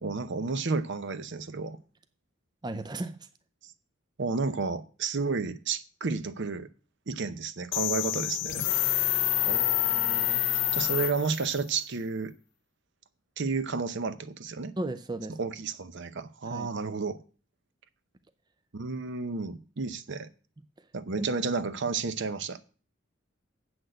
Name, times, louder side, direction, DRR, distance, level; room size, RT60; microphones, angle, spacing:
voice 1, 0.0-1.8 3.6-3.7 4.2-6.7 7.1-8.7 9.5-10.4 10.7-12.3 13.4-14.7 15.3-17.2 18.7-20.3 20.9-22.6, right 4 dB, 60° right, 0.7 m, -32 dB
voice 2, 2.6-3.2 14.8-15.4 16.5-16.7 21.2-21.3, right 2 dB, 20° right, 0.5 m, -34 dB
sound 1, 7.7-11.6, left 16 dB, 60° left, 0.4 m, -27 dB
7.9 x 6.1 x 7.7 m
head